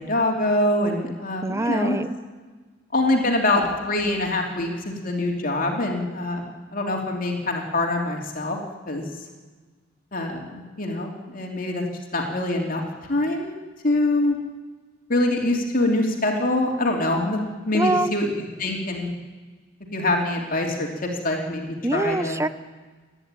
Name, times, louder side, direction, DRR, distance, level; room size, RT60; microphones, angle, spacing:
voice 1, 0.0-2.0 2.9-8.6 8.9-9.0 10.1-11.8 12.1-12.8 13.1-13.5 13.8-14.4 15.1-17.4 17.7-18.3 18.6-19.1 19.9-20.9 21.2-22.4, left 2 dB, 45° left, 1 dB, 3.1 m, -24 dB
voice 2, 1.4-2.1 17.7-18.1 21.8-22.5, right 2 dB, 15° right, 13 dB, 0.7 m, -24 dB
28.5 x 11.0 x 9.1 m, 1.4 s
head